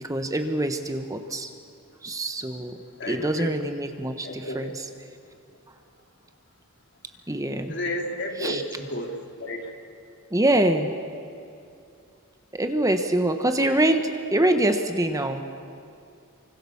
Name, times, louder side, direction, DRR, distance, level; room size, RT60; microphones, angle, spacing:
voice 1, 0.0-1.5 2.0-2.8 3.1-4.8 7.3-7.8 8.4-8.6 10.3-10.9 12.5-15.5, right 1 dB, 15° right, 7 dB, 1.2 m, -24 dB
voice 2, 3.0-3.5 4.2-4.7 7.7-9.7, left 1 dB, 55° left, 2 dB, 3.4 m, -32 dB
29.5 x 25.0 x 7.2 m, 2.6 s
head